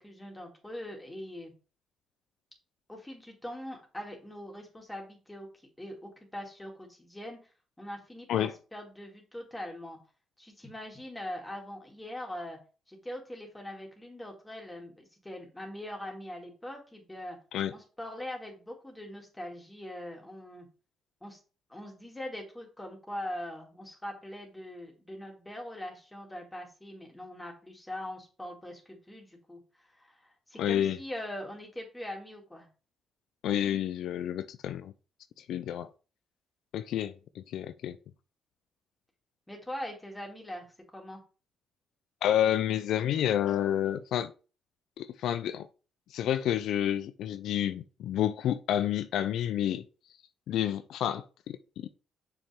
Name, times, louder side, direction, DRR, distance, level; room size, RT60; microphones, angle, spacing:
voice 1, 0.0-1.5 2.9-7.4 7.8-10.0 10.4-12.6 12.9-17.4 17.7-20.7 21.2-21.4 21.7-32.7 39.5-40.6 40.9-41.2, left 1 dB, 10° left, 2.7 m, -42 dB
voice 2, 30.6-31.0 33.4-34.9 35.4-35.9 36.7-38.0 42.2-44.3 45.0-45.7 46.1-49.8 50.5-51.9, left 11 dB, 80° left, 0.4 m, -29 dB
6.9 x 5.7 x 3.6 m
cardioid pair, 90°, 0 cm